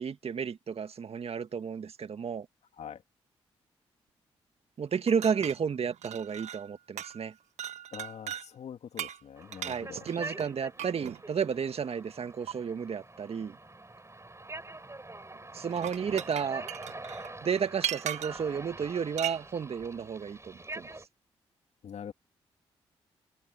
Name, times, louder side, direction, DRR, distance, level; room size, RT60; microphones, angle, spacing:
voice 1, 0.0-2.5 4.8-7.3 9.7-13.6 15.5-16.7 17.4-20.9, right 6 dB, 60° right, 1.9 m, -32 dB
sound 1, 5.1-6.7 7.0-7.3 7.6-8.5 9.0-11.2 12.5-12.6 15.6-18.5 19.2-19.4, right 11 dB, 75° right, 1.3 m, -38 dB
voice 2, 7.9-10.1 21.8-22.1, left 8 dB, 70° left, 2.4 m, -44 dB
sound 2, 9.4-21.0, right 2 dB, 25° right, 7.3 m, -45 dB
hypercardioid pair, 40°, 12 cm